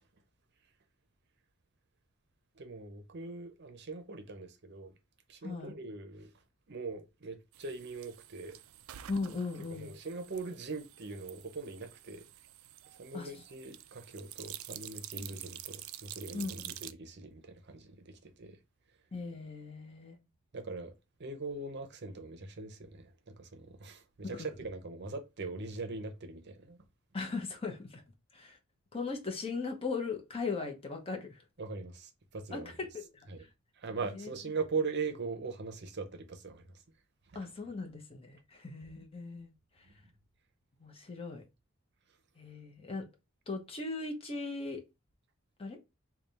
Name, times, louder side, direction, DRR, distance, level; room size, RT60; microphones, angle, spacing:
voice 1, 2.6-4.9 5.3-6.3 6.7-8.6 9.7-12.3 13.0-18.6 20.5-20.9 21.2-26.8 31.6-32.7 33.3-33.5 33.8-36.8 37.3-37.5 39.8-39.9, right 4 dB, 55° right, 0.7 m, -41 dB
voice 2, 5.4-5.7 9.1-9.9 13.1-13.3 15.2-15.3 16.3-16.7 19.1-20.2 24.2-24.5 27.1-28.0 28.3-28.6 28.9-31.4 32.5-32.9 33.1-33.3 34.1-34.3 37.3-39.5 40.8-41.4 42.4-43.0 43.5-44.8 45.6-45.8, left 4 dB, 30° left, 0.9 m, -38 dB
sound 1, 7.5-16.9, right 13 dB, 85° right, 0.3 m, -48 dB
3.4 x 2.3 x 4.1 m
head